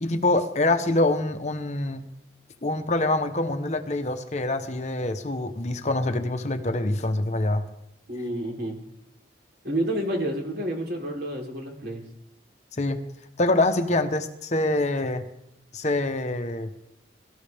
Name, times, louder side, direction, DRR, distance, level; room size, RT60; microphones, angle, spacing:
voice 1, 0.0-2.0 2.6-7.6 12.8-13.0 13.4-15.2 15.7-16.7, left 2 dB, 40° left, 8 dB, 1.0 m, -25 dB
voice 2, 8.1-8.8 9.6-12.0, right 1 dB, 60° right, 1 dB, 3.5 m, -29 dB
23.0 x 13.5 x 3.5 m, 0.86 s
head